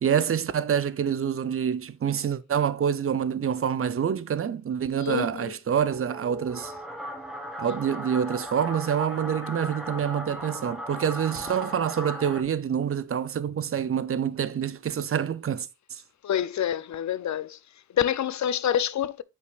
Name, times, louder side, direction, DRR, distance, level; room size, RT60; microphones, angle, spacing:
voice 1, 0.0-6.7 7.6-16.0, right 8 dB, 40° right, 0.6 m, -27 dB
voice 2, 5.0-5.5 16.2-17.6 17.9-19.2, left 10 dB, 60° left, 0.5 m, -27 dB
sound 1, 5.7-12.4, equal, ahead, 1.6 m, -37 dB
8.3 x 5.3 x 2.4 m
cardioid pair, 90°, 33 cm